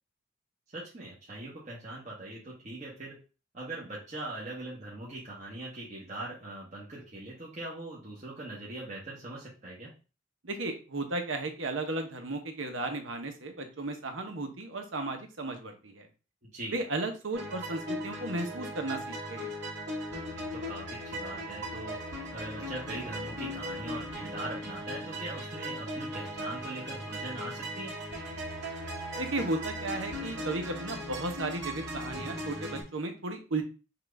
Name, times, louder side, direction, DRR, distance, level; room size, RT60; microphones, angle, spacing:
voice 1, 0.7-3.1 3.5-9.9 16.4-16.8 20.4-27.9, right 2 dB, 40° right, -6 dB, 1.2 m, -41 dB
voice 2, 10.4-16.1 16.7-19.5 29.2-33.6, right 2 dB, 90° right, 4 dB, 1.0 m, -34 dB
sound 1, 17.3-32.8, equal, 60° right, 2.0 m, -38 dB
5.8 x 2.5 x 3.4 m, 0.34 s
head